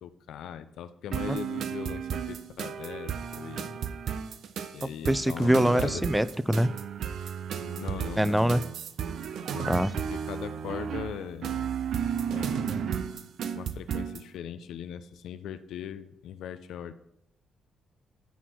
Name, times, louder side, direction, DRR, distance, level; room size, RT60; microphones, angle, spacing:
voice 1, 0.0-3.8 4.7-6.0 7.8-8.6 9.5-11.7 12.3-12.9 13.5-16.9, left 9 dB, 75° left, 12 dB, 0.4 m, -39 dB
sound 1, 1.1-14.3, right 8 dB, 70° right, 0.5 m, -33 dB
voice 2, 4.8-6.7 8.2-8.6 9.7-9.9, right 1 dB, 5° right, 16 dB, 0.4 m, -24 dB
9.3 x 4.2 x 4.5 m, 0.77 s
hypercardioid pair, 50°, 0 cm